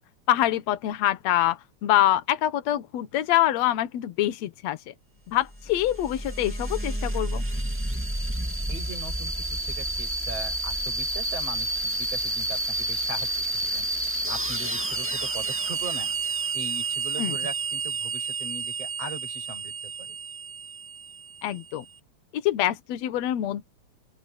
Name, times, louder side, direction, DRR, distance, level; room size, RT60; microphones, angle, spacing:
voice 1, 0.3-4.9 5.3-7.4 17.2-17.4 21.4-21.9 22.3-23.7, left 13 dB, 65° left, 1.8 m, -25 dB
sound 1, 5.5-21.8, right 2 dB, 10° right, 0.7 m, -30 dB
voice 2, 8.7-13.9 14.3-16.1 16.5-20.2, right 2 dB, 40° right, 8.8 m, -40 dB
open air
omnidirectional pair, 4.6 m